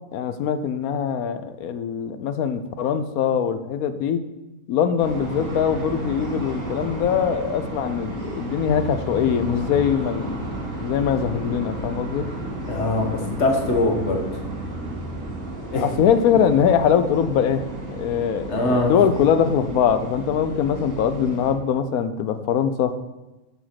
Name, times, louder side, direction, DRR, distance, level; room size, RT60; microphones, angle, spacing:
voice 1, 0.1-4.2 4.7-12.3 15.7-17.6 17.9-22.9, left 8 dB, 80° left, 11 dB, 1.1 m, -22 dB
sound 1, 5.0-21.5, right 2 dB, 70° right, 2.7 m, -33 dB
voice 2, 12.7-14.4 15.7-15.9 18.5-19.0, left 2 dB, 50° left, 2 dB, 1.7 m, -22 dB
12.5 x 5.0 x 5.8 m, 1.1 s
omnidirectional pair, 1.5 m